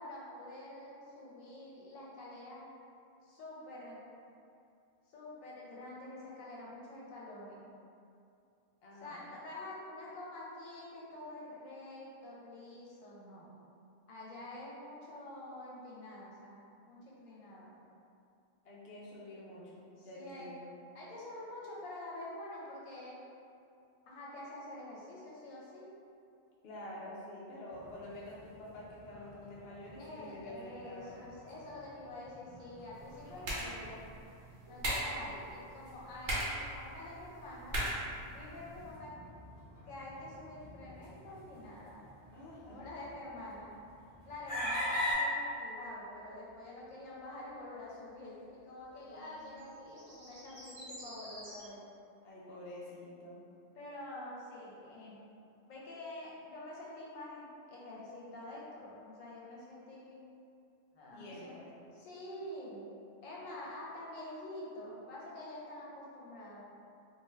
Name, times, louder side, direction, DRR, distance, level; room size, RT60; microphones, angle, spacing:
voice 1, 0.0-2.6 3.2-4.0 5.1-7.7 9.0-13.6 14.1-17.7 20.0-20.5 20.9-23.2 24.1-25.9 30.0-34.1 34.7-37.8 38.3-39.1 39.8-42.0 42.6-43.7 44.2-51.8 53.7-55.2 55.7-60.4 60.9-61.5 61.9-62.9 63.2-66.6, left 1 dB, 85° left, -6 dB, 1.0 m, -47 dB
voice 2, 8.8-9.2 18.6-20.7 26.6-31.2 42.3-42.8 49.0-49.5 52.2-53.4 61.1-61.8, left 1 dB, 60° left, -6 dB, 0.8 m, -48 dB
sound 1, 27.7-45.1, equal, 15° left, 1.0 m, -45 dB
sound 2, 32.9-38.9, right 1 dB, 60° right, 1.0 m, -40 dB
sound 3, 45.5-47.1 47.4-48.2 48.5-48.8 49.1-51.7, equal, 20° right, 1.0 m, -53 dB
2.5 x 2.4 x 3.1 m, 2.6 s
omnidirectional pair, 1.3 m